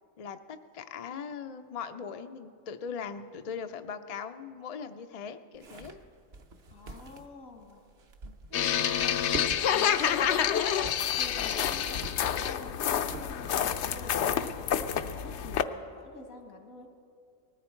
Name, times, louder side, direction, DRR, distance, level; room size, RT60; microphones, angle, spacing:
voice 1, 0.2-6.0, left 6 dB, 50° left, 8 dB, 0.4 m, -40 dB
sound 1, 5.5-13.8, right 3 dB, 50° right, 1.1 m, -45 dB
voice 2, 6.7-7.8 8.5-9.2 9.7-10.6 11.2-14.4 14.9-16.9, left 2 dB, 90° left, 3 dB, 2.3 m, -48 dB
sound 2, 8.5-15.6, left 9 dB, 65° left, 0.8 m, -28 dB
20.0 x 14.0 x 4.5 m, 2.3 s
omnidirectional pair, 1.4 m